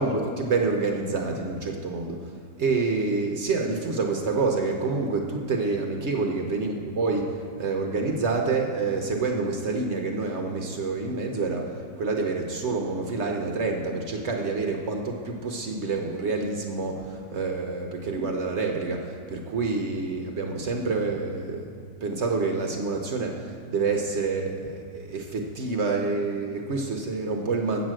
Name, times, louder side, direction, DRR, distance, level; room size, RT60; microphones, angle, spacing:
voice 1, 0.0-2.2 2.6-6.3 6.6-6.7 7.0-7.3 7.6-21.6 22.0-27.9, right 4 dB, 60° right, 2 dB, 0.7 m, -27 dB
8.1 x 6.1 x 7.5 m, 2.3 s
omnidirectional pair, 2.0 m